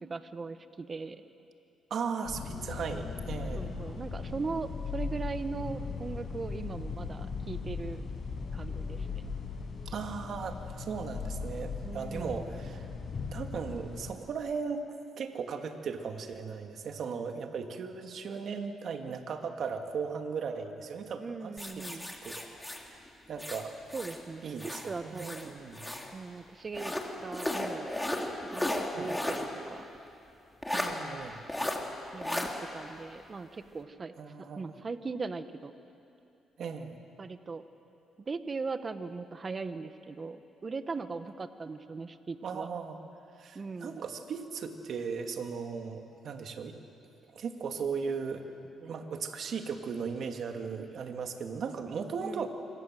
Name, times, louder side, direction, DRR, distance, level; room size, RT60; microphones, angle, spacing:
voice 1, 0.0-1.2 3.6-8.0 8.5-9.3 11.8-12.5 21.2-22.1 23.9-25.5 26.1-28.0 28.5-29.8 32.1-34.1 34.5-35.7 37.2-37.6 38.3-42.7 43.5-44.0 52.2-52.5, right 4 dB, 35° right, 10 dB, 1.1 m, -39 dB
voice 2, 1.9-3.7 9.9-12.9 13.3-14.8 15.2-21.8 22.2-22.4 22.7-23.0 23.3-23.8 24.4-25.9 28.9-29.1 30.7-31.4 34.2-34.6 36.6-37.0 42.4-43.0 43.4-46.8 47.3-48.5 48.8-52.5, right 5 dB, 60° right, 5 dB, 2.2 m, -37 dB
sound 1, 2.2-14.1, left 4 dB, 45° left, 6.7 m, -38 dB
sound 2, 21.6-24.2 24.6-26.1 26.7-29.5 29.8-29.9 30.6-30.9 31.5-31.8 32.2-32.5, left 1 dB, 10° left, 3.1 m, -34 dB
26.5 x 25.0 x 7.6 m, 2.7 s
cardioid pair, 90°, 0 cm